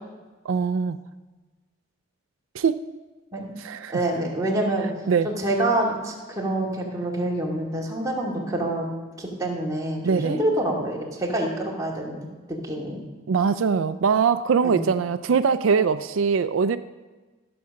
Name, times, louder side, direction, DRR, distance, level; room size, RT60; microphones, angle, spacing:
voice 1, 0.5-1.0 2.5-2.9 3.6-3.9 5.1-5.3 10.0-10.4 13.3-16.8, right 6 dB, 85° right, 12 dB, 0.4 m, -22 dB
voice 2, 3.9-4.9 5.2-8.9 9.2-13.0 14.6-14.8, right 1 dB, 20° right, -3 dB, 2.3 m, -27 dB
14.5 x 6.9 x 6.4 m, 1.3 s
head